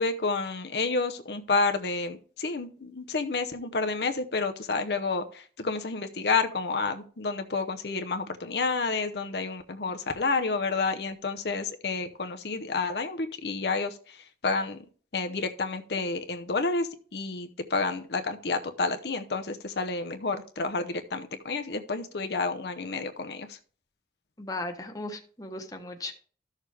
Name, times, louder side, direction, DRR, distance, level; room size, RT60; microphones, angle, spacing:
voice 1, 0.0-14.8 15.1-23.6, left 4 dB, 70° left, 6 dB, 0.8 m, -30 dB
voice 2, 24.4-26.1, left 2 dB, 20° left, 4 dB, 1.2 m, -36 dB
13.0 x 6.5 x 3.4 m, 0.43 s
head